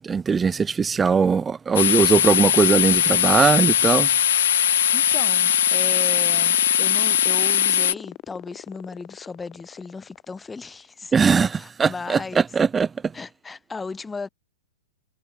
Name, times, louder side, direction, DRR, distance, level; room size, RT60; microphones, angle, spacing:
voice 1, 0.0-4.1 11.1-12.9, right 5 dB, 15° right, 0.4 m, -20 dB
sound 1, 1.8-7.9, left 11 dB, 65° left, 0.9 m, -20 dB
sound 2, 4.5-11.0, left 16 dB, 35° left, 3.3 m, -41 dB
voice 2, 4.9-12.4 13.1-14.3, left 4 dB, 10° left, 4.5 m, -36 dB
hypercardioid pair, 120°, 0 cm